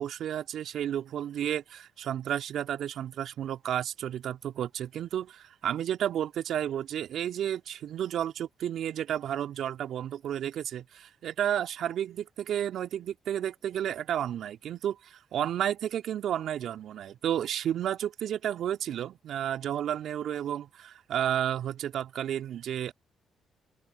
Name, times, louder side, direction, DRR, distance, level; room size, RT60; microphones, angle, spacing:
voice 1, 0.0-22.9, right 10 dB, 65° right, 2.5 m, -32 dB
open air
hypercardioid pair, 45°, 0 cm